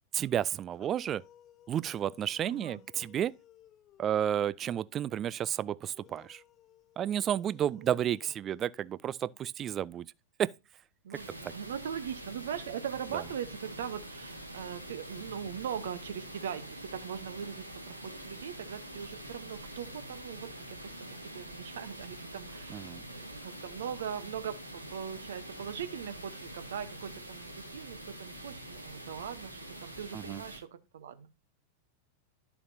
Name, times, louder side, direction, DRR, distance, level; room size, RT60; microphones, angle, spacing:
voice 1, 0.1-1.2 1.7-3.3 4.0-6.4 7.0-10.1 10.4-10.5 11.4-11.5 13.1-13.2 22.7-23.0 30.1-30.4, right 10 dB, 30° right, 0.4 m, -31 dB
sound 1, 0.7-4.5 5.8-9.4, left 11 dB, 30° left, 1.0 m, -60 dB
voice 2, 2.4-2.8 7.8-7.9 11.0-31.3, right 8 dB, 60° right, 1.0 m, -40 dB
sound 2, 11.1-30.6, right 1 dB, 85° right, 1.7 m, -46 dB
sound 3, 11.3-27.3, equal, 90° left, 0.7 m, -53 dB
12.0 x 7.0 x 2.8 m
figure-of-eight pair, 90°, 0 cm